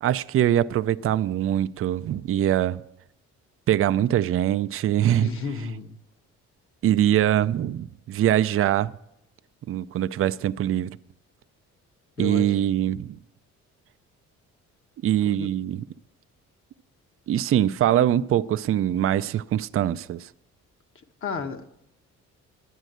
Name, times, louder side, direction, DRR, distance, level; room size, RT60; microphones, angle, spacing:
voice 1, 0.0-2.8 3.7-5.3 6.8-8.9 9.7-11.0 12.2-13.2 15.0-15.8 17.3-20.3, right 11 dB, 45° right, 0.4 m, -23 dB
voice 2, 5.2-6.0 12.2-12.6 15.2-15.5 21.2-21.7, left 5 dB, 45° left, 1.0 m, -32 dB
10.0 x 8.8 x 7.9 m
cardioid pair, 90°, 30 cm